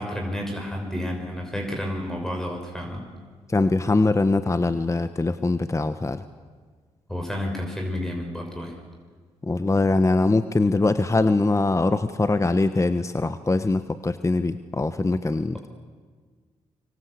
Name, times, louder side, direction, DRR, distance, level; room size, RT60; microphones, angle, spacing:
voice 1, 0.0-3.1 7.1-8.7, left 1 dB, 5° left, 2 dB, 5.9 m, -30 dB
voice 2, 3.5-6.2 9.4-15.7, left 2 dB, 25° left, 11 dB, 1.2 m, -22 dB
25.0 x 24.0 x 8.3 m, 1.5 s
supercardioid pair, 50°, 13 cm